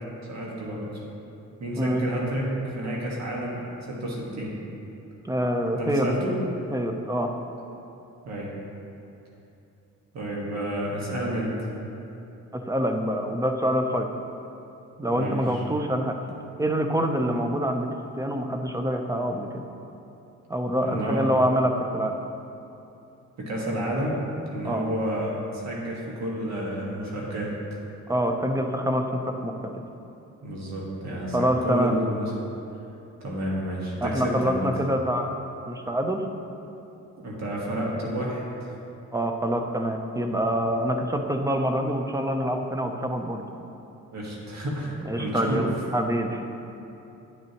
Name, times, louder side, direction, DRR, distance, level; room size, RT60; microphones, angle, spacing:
voice 1, 0.3-1.0 1.6-4.5 5.7-6.4 8.2-8.5 10.1-11.5 15.1-15.6 20.8-21.3 23.4-24.2 24.4-27.5 30.4-32.3 33.2-34.7 37.2-38.7 44.1-45.6, equal, 60° right, -4 dB, 1.7 m, -30 dB
voice 2, 5.2-6.1 6.7-7.3 12.5-14.1 15.0-16.2 16.6-17.9 18.2-19.6 20.5-22.1 24.6-24.9 28.1-29.7 31.3-31.9 34.0-35.4 35.7-36.2 39.1-43.4 45.0-46.4, equal, 10° right, 4 dB, 0.6 m, -26 dB
10.0 x 6.7 x 3.0 m, 2.9 s
cardioid pair, 90°, 30 cm